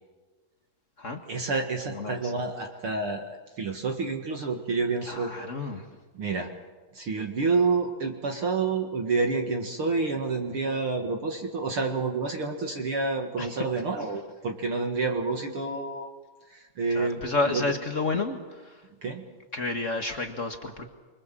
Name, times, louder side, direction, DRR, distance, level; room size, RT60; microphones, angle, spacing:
voice 1, 1.3-3.3 3.6-5.3 6.1-6.5 6.9-16.1 16.5-17.2 17.5-17.6 19.0-19.2, right 4 dB, 45° right, 3 dB, 2.3 m, -28 dB
voice 2, 1.9-2.3 5.1-5.9 13.4-13.6 16.9-18.8 19.5-20.9, left 3 dB, 40° left, 5 dB, 1.0 m, -31 dB
26.5 x 25.0 x 7.6 m, 1.3 s
omnidirectional pair, 3.9 m